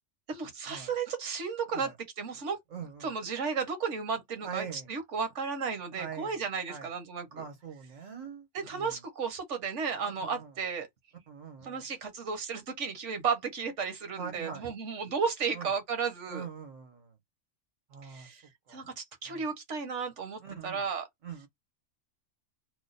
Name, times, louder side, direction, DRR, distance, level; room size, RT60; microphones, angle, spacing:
voice 1, 0.3-2.6 3.0-7.4 8.5-10.9 11.6-16.4 18.0-18.4 18.7-21.1, right 5 dB, 70° right, 1.2 m, -34 dB
voice 2, 2.7-3.1 4.4-4.9 5.9-6.3 6.7-6.9 7.3-9.0 10.2-10.5 11.3-11.9 14.2-14.6 15.5-15.7 16.3-17.2 17.9-18.3 18.7-18.8 19.3-19.5 20.4-20.8 21.2-21.5, right 7 dB, 85° right, 1.5 m, -43 dB
3.0 x 2.2 x 3.9 m
omnidirectional pair, 1.3 m